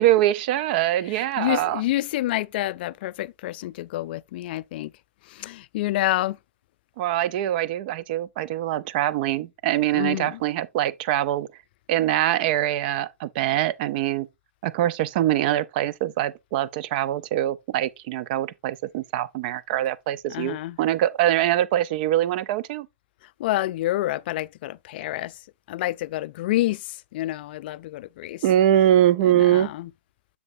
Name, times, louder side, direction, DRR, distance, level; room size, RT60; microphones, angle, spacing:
voice 1, 0.0-1.8 7.0-11.5 11.9-14.3 14.6-22.9 28.4-29.7, right 12 dB, 45° right, 0.7 m, -23 dB
voice 2, 1.1-4.9 5.3-6.4 9.9-10.4 20.3-20.8 23.4-25.3 25.7-28.4 29.2-29.9, left 16 dB, 45° left, 0.4 m, -28 dB
7.8 x 6.7 x 2.6 m
hypercardioid pair, 130°, 7 cm